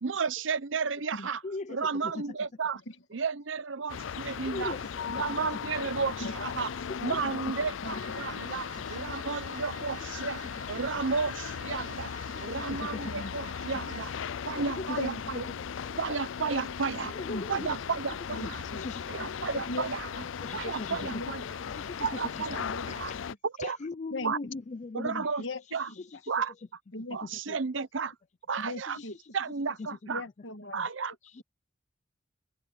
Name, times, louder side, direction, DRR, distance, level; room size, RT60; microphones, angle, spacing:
voice 1, 0.0-1.4 1.7-2.8 3.1-4.7 5.1-10.4 10.7-12.1 12.4-14.1 14.5-15.4 16.0-17.2 17.5-18.6 19.1-20.1 20.5-21.4 22.0-23.1 23.4-23.8 24.2-24.4 24.9-25.4 25.7-25.9 26.3-26.5 27.1-28.1 28.5-29.0 29.3-30.2 30.7-31.1, right 5 dB, 75° right, 0.8 m, -33 dB
voice 2, 1.4-2.3 4.2-4.8 5.1-5.2 6.9-7.0 7.3-7.4 12.3-13.1 14.3-15.0 17.1-17.8 18.4-19.3 20.4-21.2 21.7-23.1 23.6-25.3 25.7-26.3 27.1-27.3 28.9-29.2 31.2-31.4, left 3 dB, 40° left, 0.5 m, -40 dB
sound 1, 3.9-23.3, left 7 dB, 90° left, 0.5 m, -37 dB
voice 3, 7.8-8.3 10.2-10.3 13.1-13.5 15.0-16.0 17.3-17.6 18.4-18.8 19.7-19.9 20.1-20.2 21.1-21.3 21.6-21.7 22.6-22.9 24.1-24.3 25.4-25.6 25.9-26.0 26.9-27.2 27.5-27.6 28.6-29.2 30.1-30.9, left 2 dB, 75° left, 1.8 m, -39 dB
Wind instrument woodwind instrument, 7.9-14.3, right 4 dB, 45° right, 1.5 m, -49 dB
head